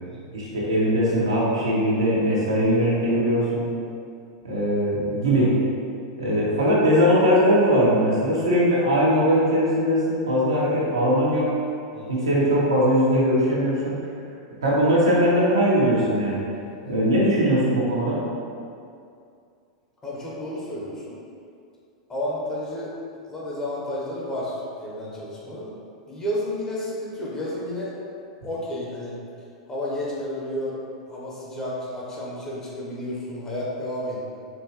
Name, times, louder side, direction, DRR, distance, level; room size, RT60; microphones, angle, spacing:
voice 1, 0.3-3.7 4.4-5.6 6.2-11.5 12.1-14.0 14.6-16.4 16.8-18.2, equal, 85° right, -7 dB, 1.0 m, -20 dB
voice 2, 11.9-12.3 20.0-21.2 22.1-22.9 23.3-25.7 26.1-27.9 28.4-29.2 29.7-30.8 31.1-34.2, left 1 dB, 20° left, -6 dB, 1.1 m, -31 dB
4.3 x 2.7 x 3.0 m, 2.4 s
hypercardioid pair, 95°, 3 cm